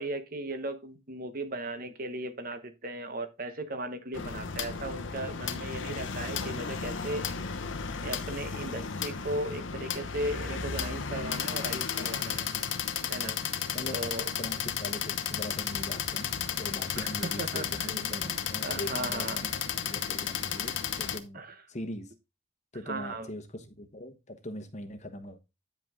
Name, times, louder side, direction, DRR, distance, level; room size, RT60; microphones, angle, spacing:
voice 1, 0.0-7.3 8.0-12.5 13.1-13.4 13.9-14.3 16.9-19.4 21.3-21.5 22.9-23.3, right 1 dB, 50° right, 1.0 m, -37 dB
sound 1, 4.1-21.2, left 7 dB, 80° left, 0.9 m, -33 dB
voice 2, 13.4-21.4 21.7-22.1 22.7-25.4, left 1 dB, 35° left, 1.1 m, -42 dB
9.4 x 5.3 x 3.6 m
head